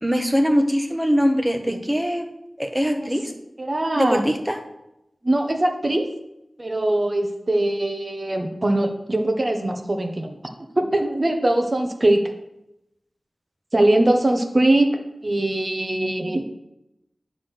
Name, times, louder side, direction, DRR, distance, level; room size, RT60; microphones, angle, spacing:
voice 1, 0.0-2.3 2.6-3.3 4.0-4.6, equal, 10° right, 4 dB, 1.2 m, -22 dB
voice 2, 3.6-4.2 5.2-6.1 6.6-10.4 10.8-12.3 13.7-16.4, right 1 dB, 40° right, 4 dB, 1.3 m, -21 dB
9.8 x 4.0 x 6.5 m, 0.85 s
wide cardioid pair, 55°, 0 cm